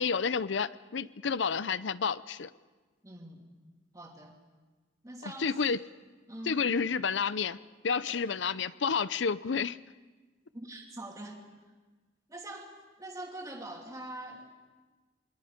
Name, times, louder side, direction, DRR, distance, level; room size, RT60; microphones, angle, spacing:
voice 1, 0.0-2.5 5.4-5.8 6.5-7.6 7.8-9.8, left 5 dB, 65° left, 17 dB, 0.6 m, -30 dB
voice 2, 3.0-3.5 3.9-4.3 5.0-5.6 6.3-6.6 8.0-8.2 10.5-11.5 12.3-14.5, right 1 dB, 15° right, 0 dB, 2.9 m, -44 dB
28.0 x 22.5 x 5.1 m, 1.3 s
head